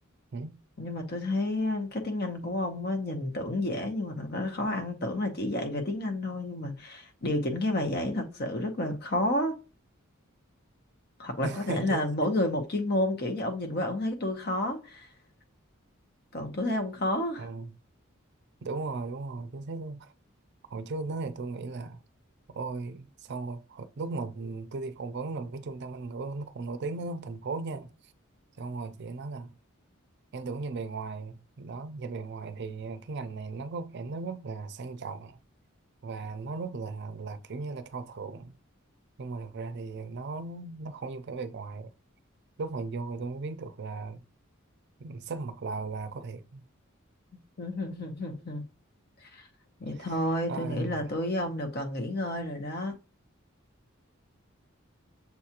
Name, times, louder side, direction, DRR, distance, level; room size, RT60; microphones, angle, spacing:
voice 1, 0.8-9.6 11.2-15.1 16.3-17.5 47.6-48.6 49.3-49.5 49.8-52.9, left 1 dB, 50° left, 0.9 m, -30 dB
voice 2, 11.4-12.3 17.4-17.7 18.6-20.1 20.7-22.0 22.5-27.9 28.6-29.5 30.3-35.4 36.0-38.6 39.2-41.9 42.6-44.2 45.0-46.6 50.0-50.2 50.5-51.1, right 3 dB, 55° right, 0.4 m, -37 dB
6.9 x 2.4 x 2.8 m
head